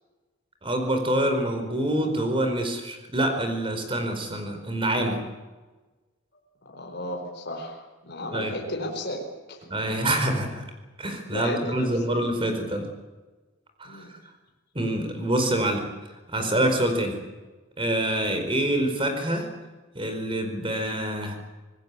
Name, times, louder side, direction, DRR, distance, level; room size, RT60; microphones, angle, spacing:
voice 1, 0.6-5.2 8.3-8.6 9.7-10.6 11.0-12.9 13.8-14.0 14.7-15.9 16.3-17.2 17.8-19.5 19.9-21.4, right 1 dB, 25° right, 6 dB, 4.7 m, -26 dB
voice 2, 6.7-9.2 9.5-9.6 11.3-12.2 13.8-14.1, left 1 dB, 55° left, 1 dB, 4.6 m, -34 dB
26.0 x 19.5 x 8.5 m, 1.2 s
head